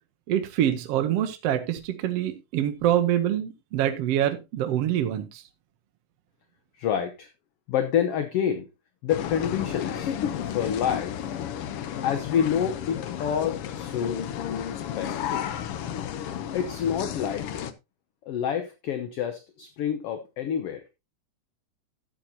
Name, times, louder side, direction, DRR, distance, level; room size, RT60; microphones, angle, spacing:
voice 1, 0.3-5.4, right 11 dB, 70° right, 1.6 m, -25 dB
voice 2, 6.8-7.3 7.7-8.7 9.0-10.1 10.4-11.1 12.0-14.2 14.7-15.5 16.5-17.7 18.3-20.8, left 8 dB, 65° left, 1.6 m, -28 dB
sound 1, 9.1-17.7, left 9 dB, 80° left, 1.3 m, -32 dB
13.0 x 8.9 x 2.8 m
omnidirectional pair, 3.6 m